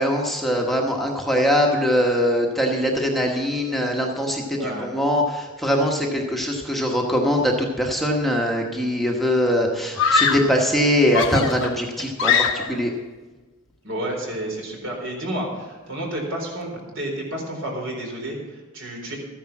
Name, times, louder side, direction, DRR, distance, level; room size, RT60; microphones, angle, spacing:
voice 1, 0.0-12.9, equal, ahead, -1 dB, 1.2 m, -22 dB
voice 2, 4.5-4.9 13.8-19.2, right 1 dB, 65° right, 0 dB, 4.0 m, -30 dB
Screaming, 8.4-8.9 10.0-10.6 11.1-12.9, left 5 dB, 65° left, 1.0 m, -22 dB
14.0 x 10.0 x 6.0 m, 1.3 s
head